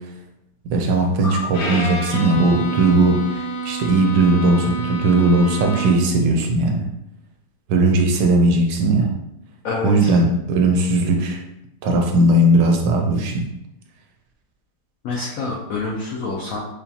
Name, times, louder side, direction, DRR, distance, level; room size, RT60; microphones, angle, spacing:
voice 1, 0.6-6.9 7.7-9.1 9.8-11.4 11.8-13.5, right 2 dB, 75° right, 3 dB, 1.2 m, -18 dB
sound 1, 1.2-4.0, left 4 dB, 40° left, 1.4 m, -37 dB
Bowed string instrument, 1.5-6.2, right 2 dB, 65° left, 1.2 m, -28 dB
voice 2, 9.6-10.2 15.0-16.6, left 3 dB, 85° left, -2 dB, 0.7 m, -27 dB
5.3 x 2.2 x 2.8 m, 0.86 s
omnidirectional pair, 2.1 m